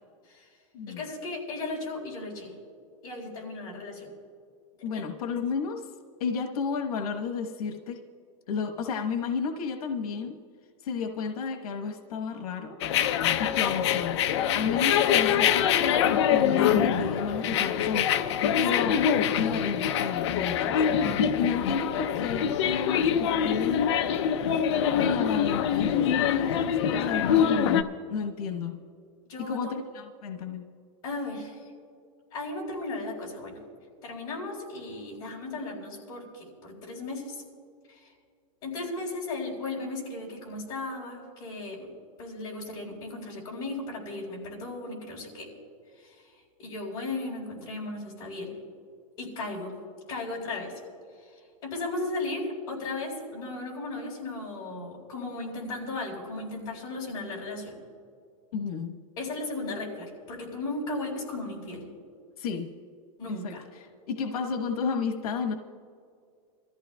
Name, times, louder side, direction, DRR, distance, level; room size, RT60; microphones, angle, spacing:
voice 1, 0.9-2.5 3.0-4.1 4.9-5.1 29.3-29.6 31.0-31.7 32.3-33.6 34.0-37.4 37.9-38.1 38.6-41.9 42.2-45.5 46.0-46.2 46.6-48.5 49.2-49.7 50.1-50.7 51.2-51.3 51.6-57.8 59.2-61.9 63.2-63.7, left 2 dB, 25° left, -5 dB, 4.0 m, -36 dB
voice 2, 4.8-5.9 6.2-8.0 8.5-10.4 10.8-12.8 13.4-14.2 14.5-16.0 16.3-18.3 18.6-19.0 19.4-20.8 21.4-23.8 25.0-28.8 29.4-30.6 58.5-59.0 62.4-62.7 63.3-65.5, left 5 dB, 85° left, 4 dB, 1.1 m, -32 dB
sound 1, 12.8-27.8, left 9 dB, 50° left, 0.6 m, -24 dB
26.0 x 14.5 x 2.2 m, 2.2 s
supercardioid pair, 175°, 19 cm